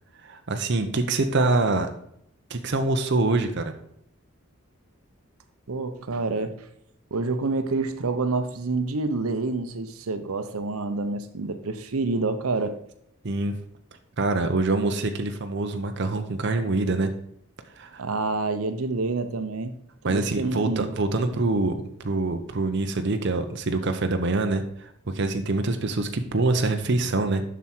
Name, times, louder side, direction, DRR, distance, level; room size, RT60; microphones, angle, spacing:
voice 1, 0.2-1.9 2.5-3.7 13.2-13.5 14.2-17.1 17.8-18.0 20.0-27.4, right 2 dB, 55° right, 6 dB, 0.7 m, -25 dB
voice 2, 5.7-6.7 7.1-12.8 18.0-19.7 20.0-20.9, right 3 dB, 85° right, 9 dB, 0.8 m, -28 dB
7.2 x 6.1 x 4.4 m, 0.72 s
head